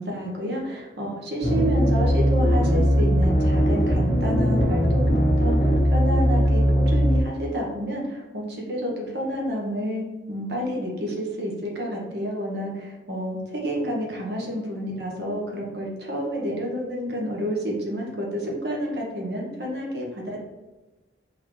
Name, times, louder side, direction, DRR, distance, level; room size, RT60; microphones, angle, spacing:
voice 1, 0.0-20.4, equal, 65° right, -2 dB, 1.1 m, -29 dB
sound 1, 1.4-7.2, equal, 75° left, 0.9 m, -20 dB
4.0 x 3.6 x 3.2 m, 1.1 s
head